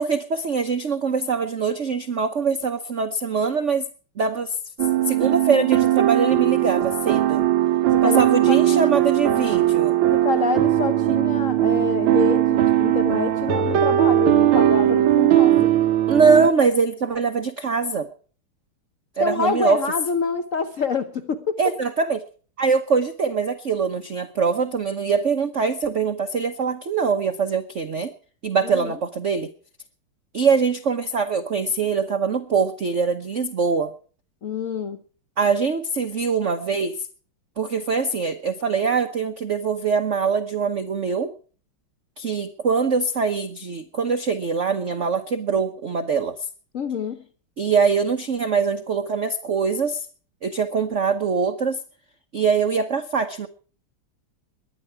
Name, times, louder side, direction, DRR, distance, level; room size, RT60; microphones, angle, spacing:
voice 1, 0.0-3.8 4.2-4.6 5.0-7.4 8.0-10.0 16.1-18.1 19.2-19.8 21.6-22.2 22.6-28.1 28.4-29.5 30.3-33.9 35.4-37.1 37.6-41.3 42.2-46.5 47.6-50.1 50.4-51.8 52.3-53.5, right 5 dB, 50° right, 8 dB, 1.0 m, -23 dB
sound 1, 4.8-16.5, right 12 dB, 75° right, 1.6 m, -19 dB
voice 2, 8.5-8.9 10.1-15.7 19.2-21.6 28.6-29.0 34.4-35.0 46.7-47.3, left 5 dB, 50° left, 9 dB, 1.0 m, -27 dB
21.0 x 10.5 x 4.7 m, 0.41 s
omnidirectional pair, 2.3 m